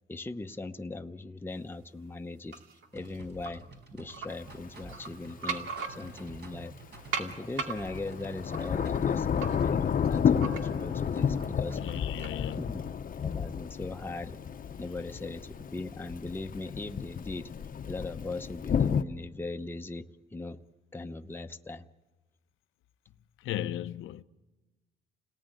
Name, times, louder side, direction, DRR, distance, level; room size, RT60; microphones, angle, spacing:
voice 1, 0.1-2.6 2.9-3.6 3.9-6.7 7.2-9.3 9.6-11.8 12.6-12.8 13.2-14.4 14.8-17.5 17.9-20.1 20.3-20.6 20.9-21.9, left 2 dB, 10° left, 0.9 m, -39 dB
sound 1, 2.5-3.5 4.1-4.3 4.8-6.4 7.1-11.0 11.4-12.4, right 5 dB, 85° right, 2.4 m, -39 dB
sound 2, 2.9-12.7, right 2 dB, 60° right, 5.3 m, -50 dB
Thunder / Rain, 4.3-4.4 7.3-19.0, left 7 dB, 45° left, 0.8 m, -31 dB
voice 2, 11.8-12.6 23.4-24.2, left 12 dB, 85° left, 0.8 m, -36 dB
29.0 x 18.5 x 9.1 m
cardioid pair, 90°, 20 cm